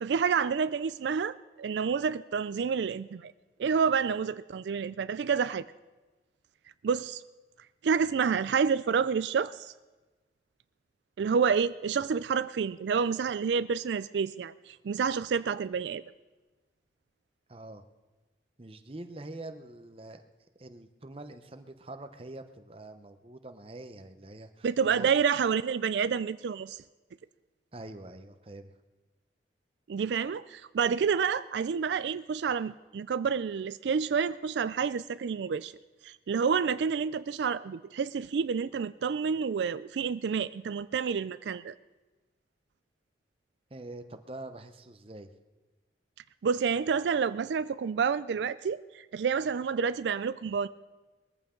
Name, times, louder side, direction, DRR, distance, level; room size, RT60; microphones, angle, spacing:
voice 1, 0.0-3.3 3.6-5.7 6.8-7.2 7.8-9.7 11.2-16.0 24.6-26.8 29.9-35.7 36.0-41.7 46.4-50.7, right 6 dB, 80° right, 14 dB, 0.4 m, -29 dB
voice 2, 17.5-17.9 18.6-20.2 20.6-25.1 27.7-28.7 43.7-45.3, right 2 dB, 30° right, 8 dB, 0.8 m, -45 dB
21.0 x 14.5 x 3.8 m, 1.2 s
head